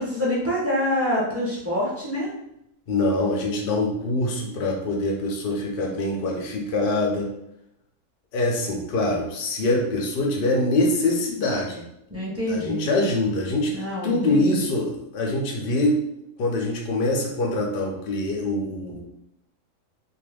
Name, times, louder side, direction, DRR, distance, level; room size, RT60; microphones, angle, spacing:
voice 1, 0.0-2.3 12.1-12.9 13.7-14.4, left 1 dB, 20° right, -7 dB, 0.4 m, -26 dB
voice 2, 2.9-7.3 8.3-11.8 12.5-16.0 16.4-19.0, left 2 dB, 70° left, 0 dB, 0.5 m, -24 dB
2.6 x 2.3 x 3.4 m, 0.80 s
omnidirectional pair, 1.7 m